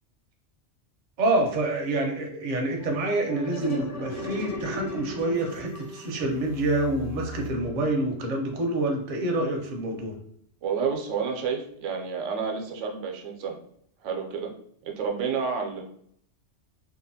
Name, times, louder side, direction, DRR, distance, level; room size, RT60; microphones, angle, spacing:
voice 1, 1.2-10.1, right 2 dB, 50° right, 1 dB, 0.6 m, -27 dB
sound 1, 2.8-8.2, left 2 dB, 65° left, 1.1 m, -37 dB
voice 2, 10.6-13.6 14.0-14.5 14.8-15.8, right 6 dB, 85° right, 2 dB, 0.9 m, -30 dB
2.8 x 2.4 x 2.6 m, 0.67 s
omnidirectional pair, 1.2 m